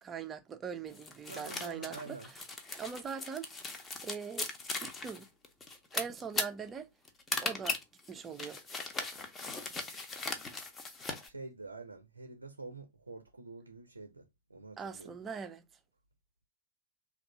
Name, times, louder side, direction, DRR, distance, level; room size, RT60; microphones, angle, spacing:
voice 1, 0.0-2.4 2.8-4.5 4.8-5.3 5.9-6.9 7.4-7.8 8.1-8.6 14.8-15.6, right 6 dB, 20° right, 0.5 m, -42 dB
sound 1, 0.9-11.3, left 3 dB, 20° left, 0.8 m, -39 dB
voice 2, 1.2-2.3 11.3-14.2 14.5-15.1, right 3 dB, 80° right, 0.5 m, -47 dB
3.3 x 2.4 x 3.8 m
figure-of-eight pair, 90°, 0 cm